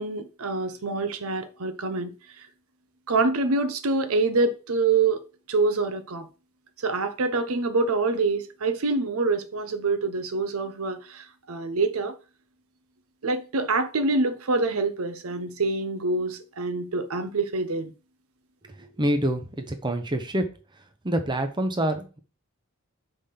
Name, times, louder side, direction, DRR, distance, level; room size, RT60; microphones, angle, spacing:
voice 1, 0.0-2.1 3.1-5.2 5.5-6.3 6.8-12.1 13.2-17.9, right 3 dB, 85° right, 0.7 m, -26 dB
voice 2, 18.8-20.5 21.0-22.2, right 1 dB, 20° right, 0.7 m, -26 dB
5.1 x 3.6 x 5.7 m
head